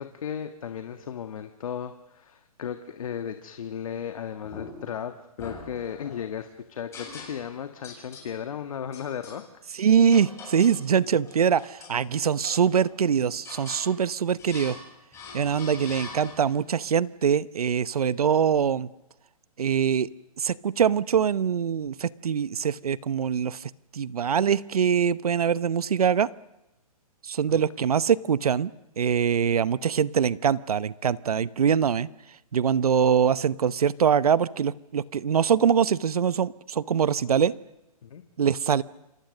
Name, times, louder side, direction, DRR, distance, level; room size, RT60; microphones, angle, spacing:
voice 1, 0.0-9.4 27.5-27.6 38.0-38.2, left 8 dB, 60° left, 8 dB, 1.8 m, -35 dB
sound 1, 4.4-5.0 5.4-6.3 6.9-7.6 7.8-8.3 8.9-9.4 10.1-10.8 11.2-12.0 12.4-13.0 13.4-13.9 14.4-14.9 15.1-16.6, left 4 dB, 15° left, 7.9 m, -43 dB
voice 2, 9.8-14.8 15.3-18.9 19.6-20.1 20.4-26.3 27.2-28.7 29.0-32.1 32.5-37.5 38.4-38.8, right 7 dB, 75° right, 18 dB, 0.9 m, -23 dB
28.0 x 26.0 x 6.7 m, 0.93 s
hypercardioid pair, 140°, 19 cm